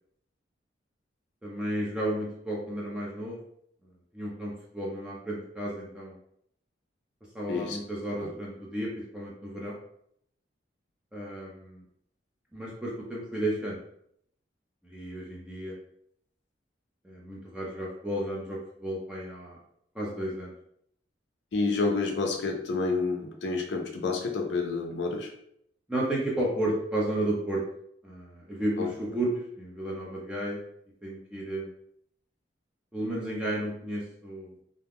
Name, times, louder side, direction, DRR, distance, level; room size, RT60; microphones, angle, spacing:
voice 1, 1.4-3.4 4.1-6.2 7.3-9.7 11.1-11.8 12.5-13.8 14.8-15.7 17.0-19.6 19.9-20.5 25.9-27.6 28.0-30.6 31.0-31.7 32.9-34.5, right 1 dB, 5° right, -5 dB, 0.5 m, -33 dB
voice 2, 21.5-25.3 28.8-28.9, left 3 dB, 65° left, 2 dB, 0.4 m, -29 dB
2.4 x 2.2 x 3.4 m, 0.71 s
head